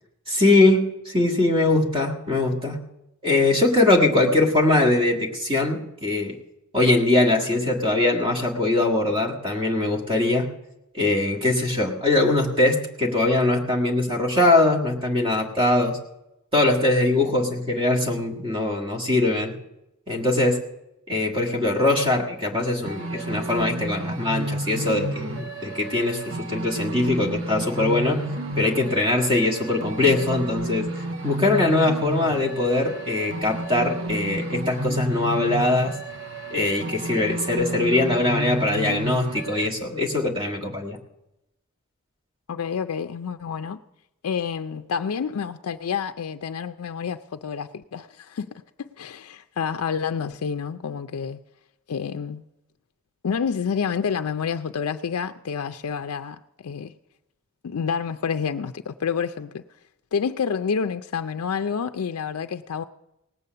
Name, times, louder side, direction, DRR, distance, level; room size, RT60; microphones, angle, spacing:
voice 1, 0.3-2.8 3.2-6.3 6.7-10.5 10.9-16.0 16.5-19.5 20.1-20.6 21.1-28.2 28.6-30.9 31.2-35.9 36.5-41.0, left 2 dB, 25° right, 1.6 m, -22 dB
sound 1, 22.8-39.7, right 2 dB, 60° right, 1.3 m, -31 dB
voice 2, 42.5-43.8 44.2-51.4 51.9-52.4 53.2-56.9 57.6-59.6 60.1-62.8, left 6 dB, 70° left, 0.4 m, -28 dB
18.5 x 8.4 x 6.6 m
head